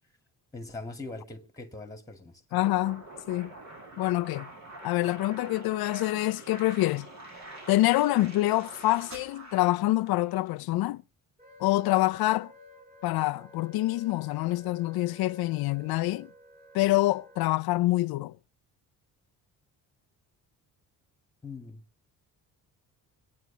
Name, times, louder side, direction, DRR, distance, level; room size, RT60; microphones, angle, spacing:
voice 1, 0.5-2.6 21.4-21.8, left 3 dB, 10° left, 2.2 m, -41 dB
voice 2, 2.5-3.5 4.0-4.5 4.8-7.1 7.7-11.0 11.6-12.5 13.0-16.3 16.7-18.4, left 17 dB, 80° left, 0.6 m, -26 dB
sound 1, 2.6-10.4, right 2 dB, 45° right, 7.9 m, -45 dB
Wind instrument woodwind instrument, 11.4-17.6, equal, 25° right, 7.0 m, -53 dB
25.5 x 9.6 x 2.8 m
cardioid pair, 130°, 37 cm